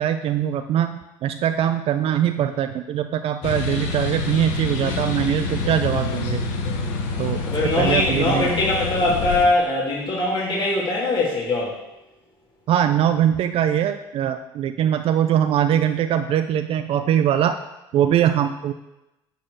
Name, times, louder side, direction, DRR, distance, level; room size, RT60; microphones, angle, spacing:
voice 1, 0.0-6.4 7.2-8.5 12.7-17.6 17.9-18.7, right 10 dB, 55° right, 8 dB, 0.5 m, -22 dB
sound 1, 3.4-9.5, left 3 dB, 75° left, 1.2 m, -27 dB
voice 2, 7.1-11.8, left 2 dB, 45° left, -4 dB, 2.6 m, -22 dB
10.0 x 4.3 x 6.6 m, 0.95 s
hypercardioid pair, 70°, 12 cm